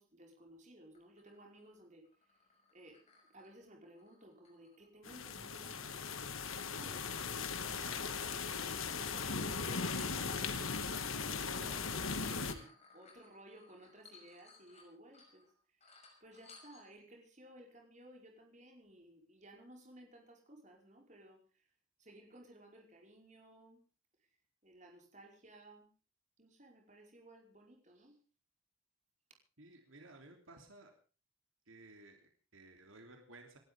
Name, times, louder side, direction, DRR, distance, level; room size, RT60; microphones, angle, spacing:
voice 1, 0.0-2.0 2.7-3.0 3.3-6.2 6.6-8.0 8.3-15.8 16.2-21.6 22.0-23.8 24.6-25.9 26.4-28.1, right 1 dB, 35° right, 2 dB, 5.1 m, -57 dB
sound 1, 0.9-5.2 5.5-9.9 10.4-10.6 11.1-15.5 15.8-17.0, left 3 dB, 30° left, 6.2 m, -64 dB
sound 2, 5.0-12.5, left 5 dB, 85° left, 1.9 m, -38 dB
voice 2, 29.6-30.9 31.7-33.6, right 2 dB, 80° right, 4 dB, 3.3 m, -57 dB
28.5 x 12.5 x 3.6 m, 0.37 s
head